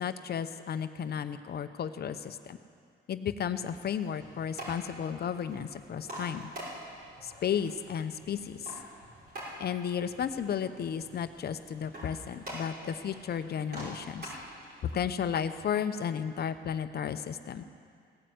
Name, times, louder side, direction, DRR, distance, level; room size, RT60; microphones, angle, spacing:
voice 1, 0.0-2.6 3.1-6.5 7.2-8.8 9.6-14.3 14.8-17.6, left 8 dB, 55° left, 10 dB, 0.8 m, -33 dB
sound 1, 4.1-15.0, equal, 50° right, 5.2 m, -46 dB
17.0 x 9.3 x 7.8 m, 2.2 s
cardioid pair, 90°, 20 cm